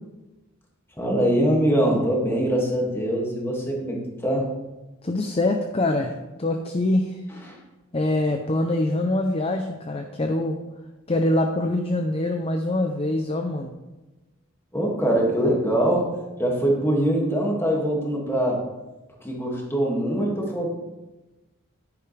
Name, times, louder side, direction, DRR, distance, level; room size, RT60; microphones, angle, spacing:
voice 1, 1.0-4.5 14.7-16.1 16.4-18.6 19.2-20.7, right 1 dB, 10° left, -2 dB, 2.1 m, -23 dB
voice 2, 5.0-7.2 7.9-10.6 11.1-13.7, left 1 dB, 30° left, 4 dB, 0.6 m, -24 dB
10.0 x 9.7 x 3.3 m, 1.1 s
head